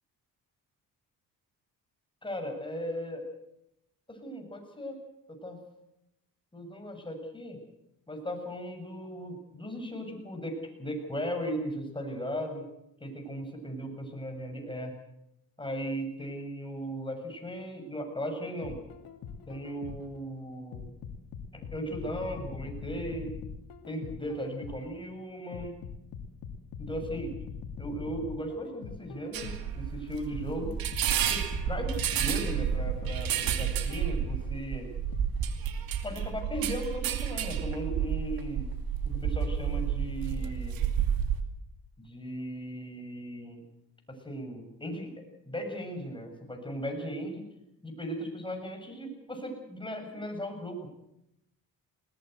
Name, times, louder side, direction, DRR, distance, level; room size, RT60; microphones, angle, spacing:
voice 1, 2.2-3.3 4.1-5.0 5.3-5.6 6.5-7.6 8.1-12.7 13.0-14.9 15.6-18.8 19.5-20.9 21.5-23.3 23.9-25.8 26.8-27.3 27.8-30.8 31.2-34.9 36.0-38.7 39.0-40.8 42.0-43.6 44.1-45.1 45.5-47.5 47.8-50.9, equal, 15° left, 3 dB, 7.1 m, -37 dB
sound 1, 18.6-20.2 20.7-25.0 25.5-29.8 30.3-34.6 35.1-35.3, left 6 dB, 85° left, 2.5 m, -42 dB
sound 2, 29.3-41.4, right 8 dB, 85° right, 2.5 m, -31 dB
21.0 x 19.0 x 7.9 m, 0.83 s
cardioid pair, 85°, 34 cm